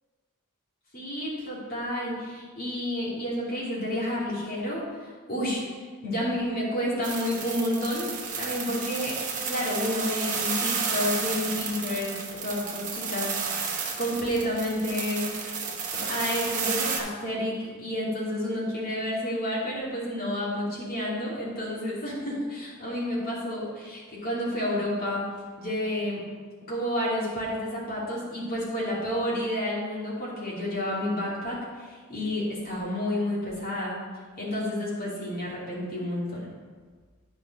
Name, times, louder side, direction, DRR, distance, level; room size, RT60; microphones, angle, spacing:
voice 1, 0.9-4.9 5.3-5.6 6.0-9.2 9.4-13.7 14.0-15.2 15.9-25.2 25.6-26.2 26.7-34.0 34.4-36.5, left 1 dB, 45° left, -7 dB, 2.7 m, -30 dB
sound 1, 7.0-17.0, right 5 dB, 35° right, 0.9 m, -32 dB
9.9 x 5.2 x 4.1 m, 1.5 s
head